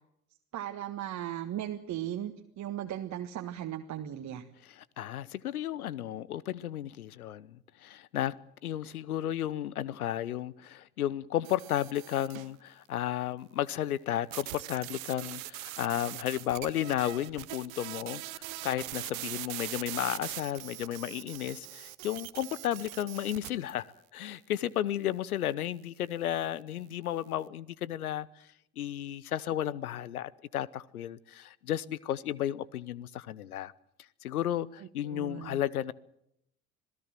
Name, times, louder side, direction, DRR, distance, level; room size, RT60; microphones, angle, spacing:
voice 1, 0.5-4.4 35.0-35.6, right 11 dB, 40° right, 1.7 m, -37 dB
voice 2, 4.7-8.3 8.6-23.8 24.1-28.3 28.8-33.7 34.2-35.9, left 12 dB, 75° left, 0.9 m, -33 dB
sound 1, 11.4-12.5 14.3-23.5, right 19 dB, 65° right, 1.1 m, -41 dB
sound 2, 18.6-19.6 20.3-21.1 21.6-23.8, right 1 dB, 5° left, 7.4 m, -65 dB
26.5 x 17.0 x 7.6 m
figure-of-eight pair, 65°, 44 cm